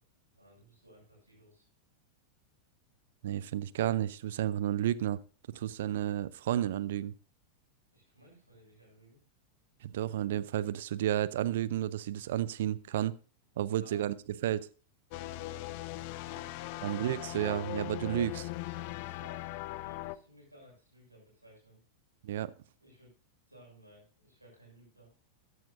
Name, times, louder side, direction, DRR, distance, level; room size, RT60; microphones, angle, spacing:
voice 1, 0.3-1.7 7.9-9.2 13.5-14.1 15.2-15.7 16.2-17.2 18.0-18.2 18.7-21.8 22.8-23.1 23.5-25.1, equal, 85° right, 6.2 m, -58 dB
voice 2, 3.2-5.2 5.5-7.1 9.8-13.1 13.6-14.7 16.8-18.3 22.2-22.5, right 12 dB, 55° right, 0.5 m, -32 dB
sound 1, 15.1-20.2, left 17 dB, 45° left, 0.5 m, -39 dB
13.5 x 10.5 x 2.6 m
figure-of-eight pair, 90°, 0 cm